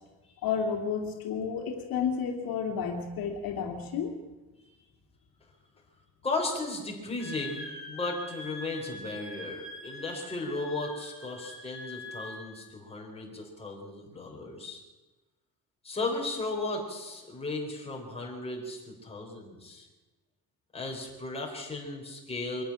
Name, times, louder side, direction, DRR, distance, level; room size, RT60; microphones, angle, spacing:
voice 1, 0.4-4.2, left 6 dB, 65° left, 2 dB, 2.7 m, -31 dB
voice 2, 6.2-14.8 15.8-19.9 20.7-22.6, left 2 dB, 15° left, -1 dB, 4.5 m, -35 dB
Wind instrument woodwind instrument, 7.2-12.5, left 2 dB, ahead, 4.1 m, -44 dB
24.0 x 11.5 x 10.0 m, 1.1 s
cardioid pair, 175°, 38 cm